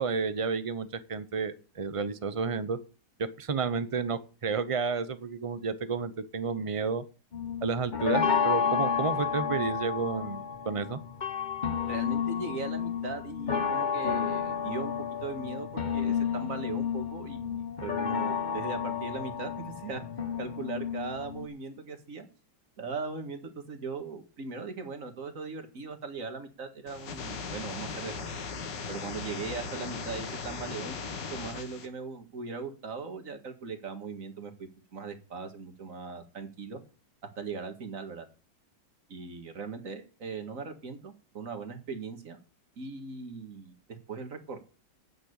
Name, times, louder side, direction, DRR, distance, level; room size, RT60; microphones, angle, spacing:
voice 1, 0.0-2.8 3.2-7.0 7.6-11.0, right 5 dB, 30° right, 13 dB, 0.6 m, -31 dB
sound 1, 7.3-21.5, left 7 dB, 30° left, 1.0 m, -31 dB
voice 2, 11.9-14.9 15.2-20.1 20.4-22.3 22.8-28.3 28.9-31.0 31.3-36.8 37.4-38.3 39.1-42.4 42.8-44.6, right 4 dB, 50° right, 7 dB, 2.2 m, -39 dB
sound 2, 26.9-31.9, left 5 dB, 90° left, 2.3 m, -38 dB
8.9 x 7.8 x 8.1 m, 0.35 s
omnidirectional pair, 1.9 m